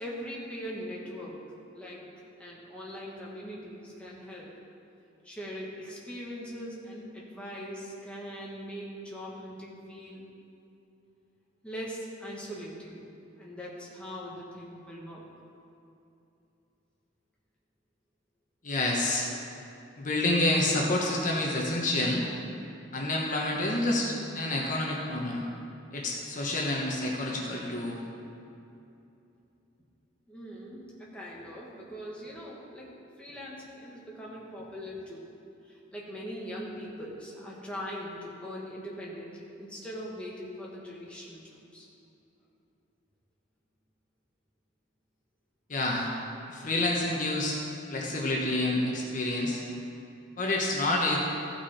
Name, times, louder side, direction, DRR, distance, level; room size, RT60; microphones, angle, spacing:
voice 1, 0.0-1.4 1.7-2.1 2.4-4.5 5.2-10.3 11.6-13.1 13.4-15.3 30.3-32.9 33.2-35.3 35.6-41.9, equal, 5° left, -5 dB, 1.5 m, -41 dB
voice 2, 18.6-19.3 20.0-22.3 22.9-25.4 25.9-28.0 45.7-46.1 46.5-47.6 47.9-49.6 50.4-51.2, left 2 dB, 40° left, -2 dB, 1.1 m, -28 dB
15.0 x 6.0 x 4.3 m, 2.7 s
head